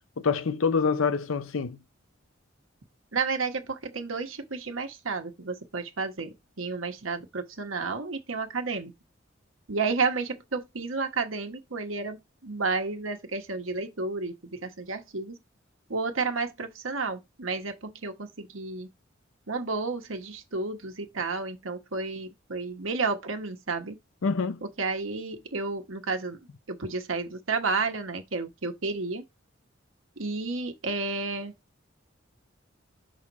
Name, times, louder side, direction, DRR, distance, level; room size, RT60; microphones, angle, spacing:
voice 1, 0.2-1.8 24.2-24.6, left 5 dB, 85° left, 0.6 m, -26 dB
voice 2, 3.1-8.9 9.7-15.4 15.9-18.9 19.5-24.0 24.6-26.4 26.7-29.2 30.2-31.5, right 4 dB, 90° right, 1.3 m, -31 dB
6.2 x 3.8 x 4.1 m
head